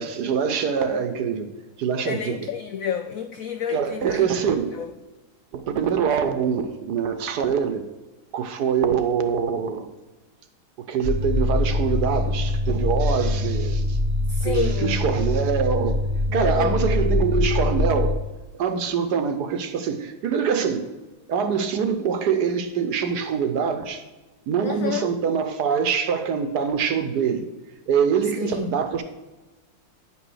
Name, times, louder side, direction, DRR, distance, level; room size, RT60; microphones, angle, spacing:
voice 1, 0.0-1.5 1.8-2.5 3.7-4.8 5.5-7.8 8.3-9.9 10.9-14.0 14.4-16.0 16.3-18.2 18.5-20.9 21.3-24.0 24.5-27.5 27.9-29.0, right 6 dB, 65° right, 1.3 m, -24 dB
voice 2, 2.0-4.3 4.7-4.9 14.3-15.0 16.3-16.7 24.6-25.1 28.4-28.7, left 8 dB, 80° left, 0.7 m, -30 dB
sound 1, 11.0-18.1, left 2 dB, 10° right, 1.3 m, -23 dB
10.0 x 6.0 x 6.3 m
omnidirectional pair, 2.1 m